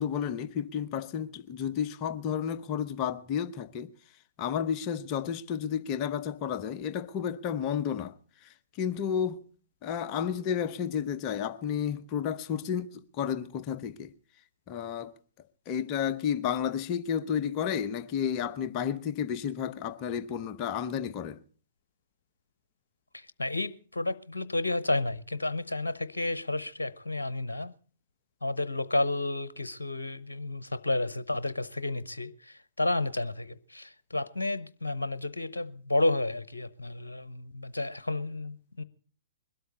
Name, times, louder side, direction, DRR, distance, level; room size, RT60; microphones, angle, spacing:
voice 1, 0.0-3.9 4.4-8.1 8.4-9.4 9.8-14.1 14.7-15.1 15.7-21.4, left 8 dB, 30° left, 0.8 m, -31 dB
voice 2, 23.1-27.7 28.4-38.8, left 2 dB, 75° left, 0.8 m, -31 dB
21.5 x 12.5 x 4.0 m
figure-of-eight pair, 120°, 0 cm